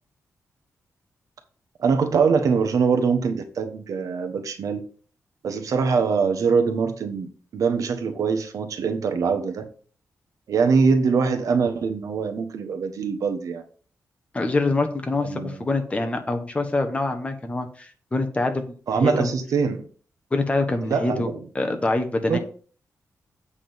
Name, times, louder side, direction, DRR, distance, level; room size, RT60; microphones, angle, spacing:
voice 1, 1.8-4.8 5.4-9.6 10.5-13.6 15.2-15.7 18.9-19.8 20.8-21.4 22.3-22.4, right 5 dB, 75° right, 1.2 m, -23 dB
voice 2, 14.3-19.3 20.3-21.3 21.5-22.4, left 2 dB, 20° left, 1.2 m, -25 dB
8.4 x 3.8 x 6.9 m
wide cardioid pair, 125°, 6 cm